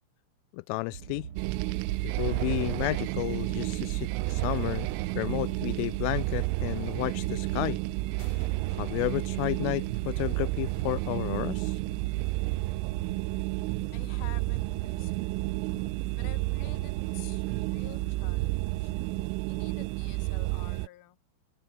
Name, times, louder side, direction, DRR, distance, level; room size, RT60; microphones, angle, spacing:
voice 1, 0.5-1.3 2.0-4.9 5.1-7.8 8.7-11.8, left 24 dB, 85° left, 3.1 m, -32 dB
sound 1, 0.9-19.3, right 7 dB, 60° right, 1.4 m, -43 dB
sound 2, 1.4-20.9, right 25 dB, 85° right, 3.1 m, -31 dB
sound 3, 8.2-10.1, left 5 dB, 30° left, 3.0 m, -58 dB
voice 2, 13.9-15.6 16.1-18.9 19.4-21.2, left 16 dB, 65° left, 2.9 m, -50 dB
omnidirectional pair, 5.7 m